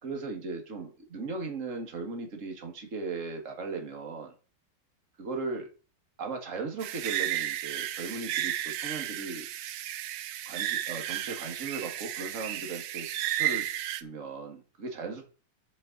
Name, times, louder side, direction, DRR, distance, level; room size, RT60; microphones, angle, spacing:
voice 1, 0.0-4.3 5.2-5.7 6.2-9.5 10.5-13.6 13.9-15.2, right 4 dB, 40° right, 3 dB, 2.2 m, -37 dB
sound 1, 6.8-14.0, right 12 dB, 85° right, 1.5 m, -33 dB
11.5 x 6.7 x 4.0 m, 0.36 s
omnidirectional pair, 2.3 m